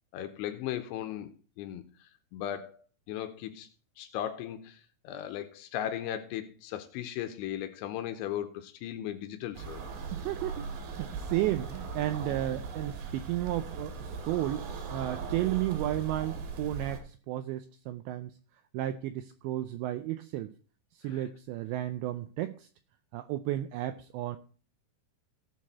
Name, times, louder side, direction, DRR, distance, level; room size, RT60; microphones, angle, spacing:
voice 1, 0.1-3.7 4.0-9.8 21.0-21.3, left 11 dB, 80° left, 2.8 m, -37 dB
sound 1, 9.5-17.0, right 5 dB, 65° right, 3.9 m, -39 dB
voice 2, 10.1-10.7 11.0-14.6 14.9-18.4 18.7-20.5 21.0-22.7 23.1-24.4, right 14 dB, 85° right, 2.5 m, -33 dB
16.5 x 6.6 x 4.2 m
omnidirectional pair, 5.7 m